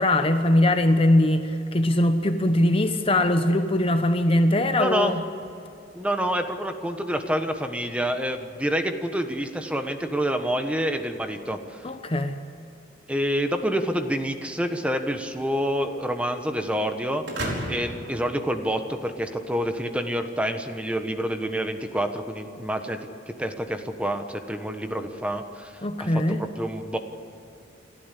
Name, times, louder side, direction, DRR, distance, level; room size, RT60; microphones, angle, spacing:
voice 1, 0.0-5.2 11.8-12.4 25.8-26.4, left 1 dB, 30° left, 8 dB, 1.0 m, -21 dB
voice 2, 4.7-5.1 5.9-11.8 13.1-17.2 17.7-23.0 23.3-25.7 26.0-26.2 26.6-27.0, equal, 5° right, 6 dB, 1.3 m, -27 dB
sound 1, 17.3-19.2, right 1 dB, 65° right, 4.8 m, -33 dB
29.5 x 13.0 x 8.4 m, 2.8 s
head